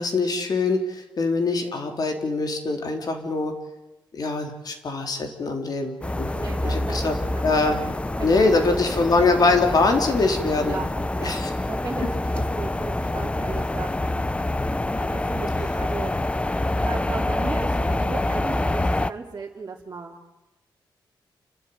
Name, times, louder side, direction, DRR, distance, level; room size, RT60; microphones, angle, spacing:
voice 1, 0.0-3.5 4.1-6.3 6.6-7.2 7.4-7.8 8.2-10.8 11.2-11.5, left 3 dB, 50° left, 5 dB, 3.8 m, -23 dB
sound 1, 6.0-19.1, left 1 dB, 15° left, 0.7 m, -26 dB
voice 2, 6.3-7.8 8.2-8.4 9.0-9.1 10.6-10.9 11.2-11.3 11.6-14.0 15.1-20.2, right 4 dB, 40° right, -3 dB, 3.1 m, -36 dB
29.0 x 12.5 x 9.6 m, 1.0 s
cardioid pair, 110°, 8 cm